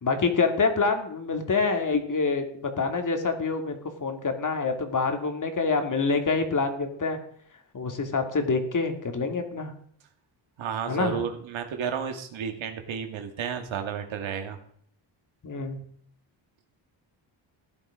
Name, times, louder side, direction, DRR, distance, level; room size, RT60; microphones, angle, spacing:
voice 1, 0.0-7.2 7.7-9.7 10.9-11.2 15.4-15.8, left 4 dB, 40° left, 6 dB, 2.6 m, -26 dB
voice 2, 10.6-14.6, right 7 dB, 75° right, 5 dB, 2.5 m, -32 dB
15.5 x 10.5 x 5.1 m, 0.64 s
cardioid pair, 95°, 47 cm